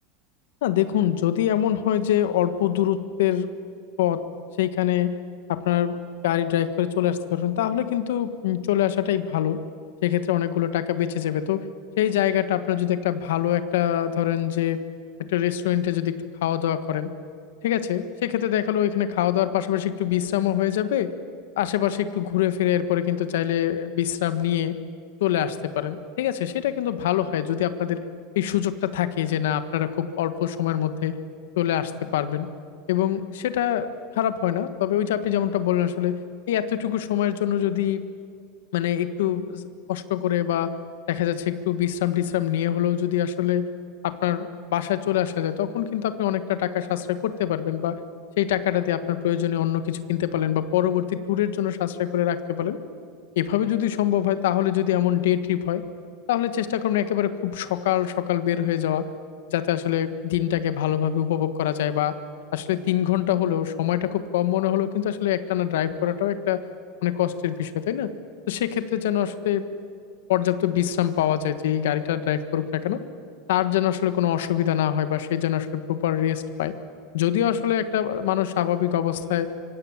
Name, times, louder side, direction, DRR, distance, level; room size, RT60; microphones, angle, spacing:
voice 1, 0.6-3.5 4.0-4.2 4.6-5.1 5.5-6.0 6.2-9.6 10.0-11.6 12.0-14.8 15.3-17.1 17.6-21.1 21.6-24.8 25.2-28.0 28.3-31.2 31.6-32.5 32.9-36.2 36.5-38.0 38.7-40.7 41.1-43.7 44.0-48.0 48.4-52.8 53.3-55.8 56.3-59.1 59.5-62.2 62.5-66.6 67.0-68.1 68.5-69.7 70.3-73.0 73.5-76.7 77.1-79.5, left 11 dB, 85° left, 10 dB, 1.5 m, -24 dB
25.5 x 25.0 x 7.4 m, 2.2 s
supercardioid pair, 175°, 0 cm